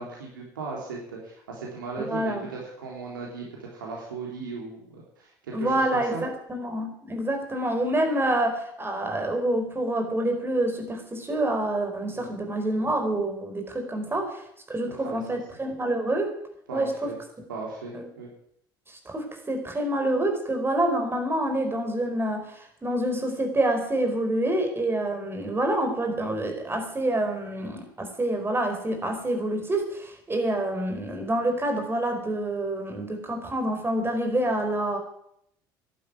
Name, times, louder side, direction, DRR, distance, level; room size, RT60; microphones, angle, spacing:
voice 1, 0.0-6.2 12.1-12.3 14.0-14.2 14.9-15.2 16.7-17.1 17.5-18.3, right 4 dB, 85° right, -2 dB, 3.4 m, -37 dB
voice 2, 2.0-2.5 5.5-16.3 16.7-17.1 17.9-18.0 18.9-35.0, right 1 dB, 20° right, 5 dB, 4.8 m, -27 dB
11.5 x 10.0 x 9.3 m, 0.73 s
hypercardioid pair, 65°, 11 cm